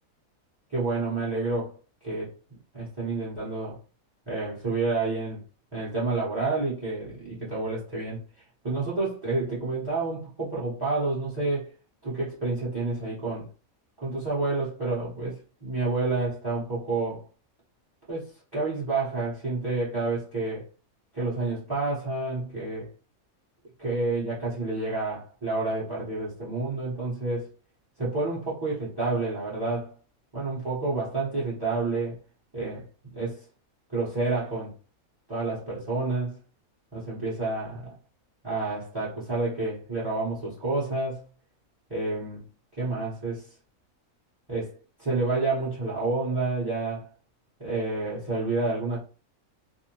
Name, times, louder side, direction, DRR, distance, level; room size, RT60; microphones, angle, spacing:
voice 1, 0.7-1.8 2.0-2.3 2.7-3.8 4.3-5.4 5.7-8.2 8.6-11.7 12.0-13.5 14.0-17.2 18.1-20.6 21.1-22.9 23.8-27.5 28.0-29.9 30.3-32.2 32.5-32.8 33.1-33.4 33.9-34.7 35.3-36.4 36.9-37.9 38.4-41.2 41.9-42.4 42.8-43.5 44.5-44.7 45.0-47.1 47.6-49.0, right 3 dB, 20° right, 0.9 m, -29 dB
2.6 x 2.0 x 2.9 m
omnidirectional pair, 1.5 m